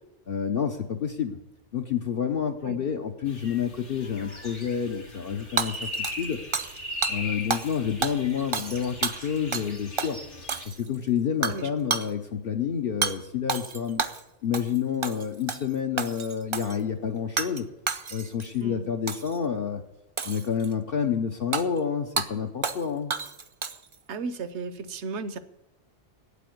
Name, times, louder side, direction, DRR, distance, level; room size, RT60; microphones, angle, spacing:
voice 1, 0.3-1.4 1.7-5.9 6.2-6.4 7.1-10.2 10.6-14.0 14.4-17.7 18.1-19.8 20.2-23.1, left 7 dB, 55° left, 3 dB, 1.0 m, -29 dB
sound 1, 3.3-10.7, left 2 dB, 75° left, 2.6 m, -39 dB
Hammer / Shatter, 5.6-6.8 7.0-7.2 7.5-7.7 8.0-9.7 10.0-10.1 10.5-10.9 11.4-11.6 11.9-12.1 13.0-13.1 13.5-14.2 14.5-14.8 15.0-15.6 16.0-16.8 17.4-17.6 17.9-18.5 19.1-19.4 20.2-20.7 21.5-21.6 22.2-22.3 22.6-22.8 23.1-23.9, right 5 dB, 35° right, 0.5 m, -30 dB
voice 2, 24.1-25.4, right 4 dB, 75° right, 13 dB, 1.1 m, -34 dB
8.8 x 8.5 x 9.2 m, 0.93 s
omnidirectional pair, 1.2 m